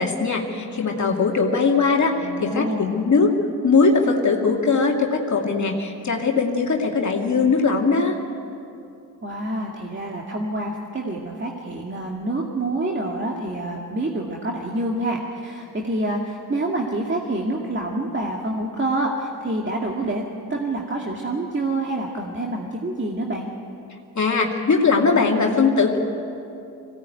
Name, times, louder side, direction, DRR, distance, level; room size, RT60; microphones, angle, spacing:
voice 1, 0.0-3.3 3.6-8.2 24.2-26.0, left 4 dB, 45° left, 0 dB, 2.4 m, -20 dB
voice 2, 2.2-3.1 9.2-20.2 20.5-23.5, right 2 dB, 30° right, -1 dB, 2.3 m, -27 dB
21.0 x 17.5 x 9.2 m, 2.7 s
cardioid pair, 65°, 39 cm